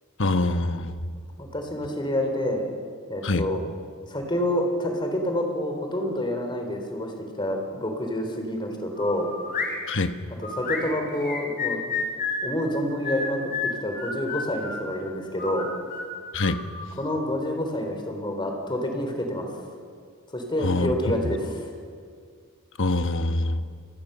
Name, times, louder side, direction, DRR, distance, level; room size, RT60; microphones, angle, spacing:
voice 1, 0.2-1.1 3.2-3.5 9.9-10.1 16.3-16.6 20.6-20.9 22.8-23.6, left 2 dB, 60° left, 9 dB, 1.2 m, -24 dB
voice 2, 1.4-2.7 3.1-3.6 4.1-7.1 7.4-9.3 10.6-11.8 12.4-15.7 17.0-19.5 20.3-21.7, left 1 dB, 20° left, 4 dB, 3.7 m, -28 dB
sound 1, 9.0-9.8 10.4-12.5 13.0-14.9 15.4-17.2, left 4 dB, 45° left, 4.1 m, -31 dB
29.5 x 19.5 x 6.9 m, 2.1 s
head